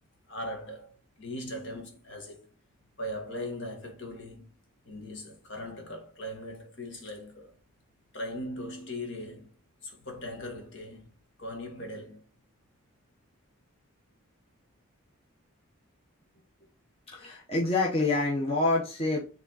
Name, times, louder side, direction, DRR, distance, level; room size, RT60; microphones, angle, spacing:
voice 1, 0.3-2.4 3.0-4.5 4.9-7.5 8.1-9.5 9.8-11.1 11.4-12.2, left 1 dB, 55° left, 1.8 m, -39 dB
voice 2, 17.1-19.3, left 2 dB, 25° left, 1.0 m, -27 dB
7.2 x 3.5 x 4.0 m
head